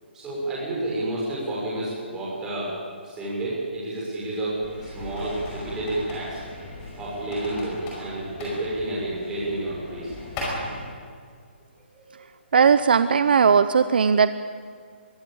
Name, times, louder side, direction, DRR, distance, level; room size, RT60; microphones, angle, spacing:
voice 1, 0.1-2.7 3.0-6.4 7.0-10.1 11.9-12.1, right 1 dB, 10° right, -6 dB, 6.3 m, -30 dB
sound 1, 4.6-10.8, left 1 dB, 15° left, 5.2 m, -37 dB
voice 2, 12.5-14.3, right 6 dB, 50° right, 12 dB, 0.7 m, -18 dB
23.0 x 16.5 x 8.8 m, 2.1 s
hypercardioid pair, 175°, 6 cm